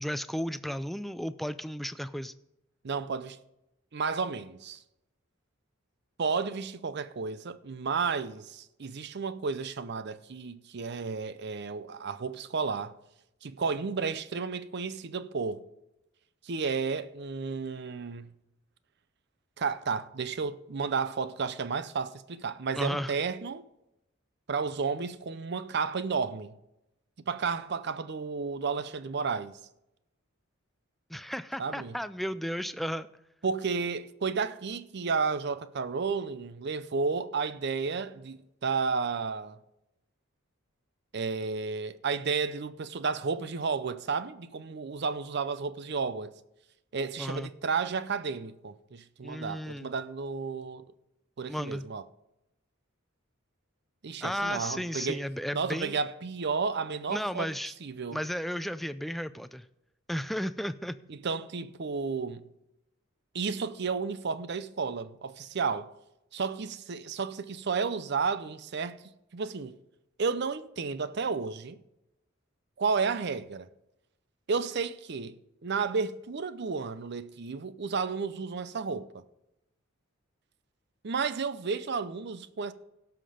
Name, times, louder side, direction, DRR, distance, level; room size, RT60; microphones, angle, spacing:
voice 1, 0.0-2.3 22.7-23.1 31.1-33.1 47.2-47.5 49.2-49.9 51.5-51.8 54.2-56.0 57.1-57.7 58.1-59.6 60.1-61.0, equal, ahead, 0.3 m, -34 dB
voice 2, 2.8-3.4 3.9-4.8 6.2-13.0 13.4-15.6 16.4-18.3 19.6-23.6 24.5-26.6 27.2-29.6 31.6-31.9 33.4-39.6 41.1-46.3 46.9-50.9 51.4-52.0 54.0-55.3 55.5-57.5 57.8-58.2 61.1-62.5 63.3-65.9 66.3-69.0 69.3-69.8 70.2-71.8 72.8-73.7 74.5-75.4 75.6-79.1 81.0-82.7, right 5 dB, 55° right, 0.6 m, -32 dB
17.0 x 5.9 x 5.0 m
head